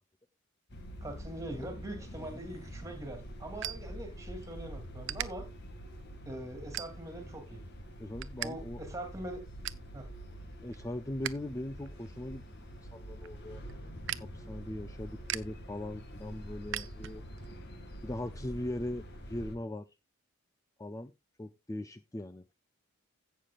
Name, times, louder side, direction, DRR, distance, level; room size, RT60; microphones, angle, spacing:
sound 1, 0.7-19.6, equal, 50° left, 2.0 m, -46 dB
voice 1, 1.0-5.5 6.2-7.6 8.4-9.4 9.9-10.1, right 1 dB, 15° right, 2.7 m, -42 dB
sound 2, 2.5-4.5 5.0-5.3 5.8-6.1 6.7-7.3 7.7-8.5 8.8-8.9 9.3-9.9 10.4-11.4 11.7-17.5, right 12 dB, 60° right, 0.6 m, -41 dB
voice 2, 8.0-8.8 10.6-12.4 12.8-13.6 14.2-17.3 18.0-19.9 20.8-21.1 21.4-22.4, left 1 dB, 15° left, 0.4 m, -40 dB
16.5 x 6.6 x 2.4 m
head